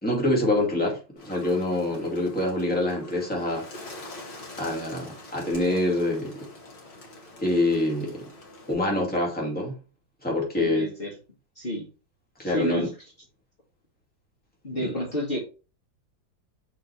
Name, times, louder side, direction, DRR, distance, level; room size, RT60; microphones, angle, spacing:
voice 1, 0.0-3.9 4.6-6.5 7.4-8.3 8.7-9.7 10.2-10.9 12.4-12.9 14.8-14.9, left 1 dB, 5° left, 2.3 m, -26 dB
Bird, 1.2-8.7, left 2 dB, 75° left, 2.8 m, -45 dB
voice 2, 10.5-11.1 11.6-11.9 12.4-12.9 14.6-15.4, equal, 30° left, 2.1 m, -30 dB
6.1 x 5.3 x 3.4 m
omnidirectional pair, 2.0 m